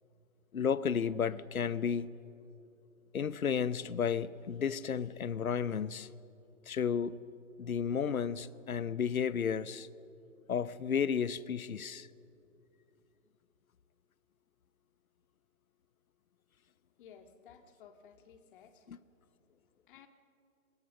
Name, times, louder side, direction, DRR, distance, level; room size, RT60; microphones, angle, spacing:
voice 1, 0.5-2.1 3.1-6.1 6.7-7.2 7.6-9.9 10.5-12.1 18.9-19.0, left 7 dB, 85° left, 1.0 m, -32 dB
voice 2, 17.0-19.0 19.2-20.1, left 7 dB, 40° left, 1.9 m, -58 dB
26.5 x 22.5 x 6.5 m
hypercardioid pair, 140°, 41 cm